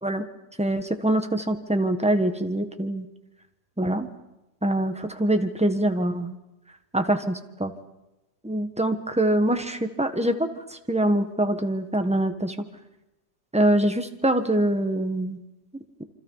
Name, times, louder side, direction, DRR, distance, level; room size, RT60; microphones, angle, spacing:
voice 1, 0.6-3.1 3.8-4.1 4.6-6.4 6.9-7.7 8.4-12.5 13.5-15.4, right 1 dB, 5° right, 6 dB, 1.2 m, -24 dB
27.5 x 25.5 x 5.6 m, 0.97 s
omnidirectional pair, 1.9 m